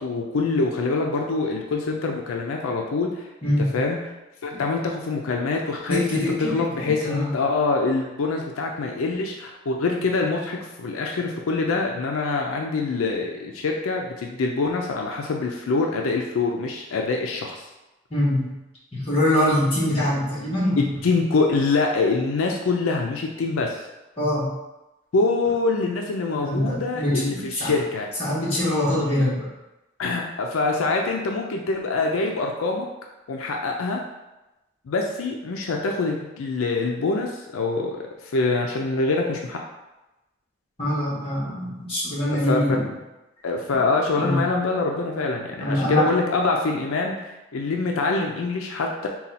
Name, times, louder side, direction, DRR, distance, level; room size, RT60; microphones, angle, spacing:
voice 1, 0.0-3.3 3.7-4.0 4.4-17.6 21.0-23.8 25.1-28.1 30.0-32.9 33.3-34.0 34.9-39.6 42.3-42.8 43.4-49.1, left 3 dB, 85° left, 1 dB, 0.4 m, -25 dB
voice 2, 5.9-7.3 18.1-18.5 18.9-20.8 24.2-24.5 26.4-27.7 28.2-29.4 40.8-42.9 44.2-44.4 45.6-46.1, left 1 dB, 30° left, -9 dB, 1.4 m, -23 dB
4.1 x 2.3 x 4.1 m, 1.0 s
head